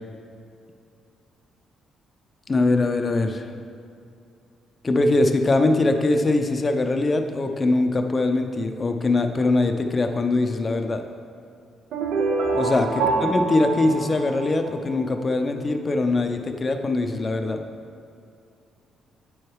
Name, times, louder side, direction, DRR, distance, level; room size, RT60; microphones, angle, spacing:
voice 1, 2.5-3.5 4.8-11.0 12.5-12.9 13.2-17.6, left 2 dB, 25° left, 5 dB, 0.5 m, -22 dB
sound 1, 11.9-15.0, right 3 dB, 80° right, 0.8 m, -25 dB
7.9 x 4.7 x 4.7 m, 2.4 s
cardioid pair, 120°, 0 cm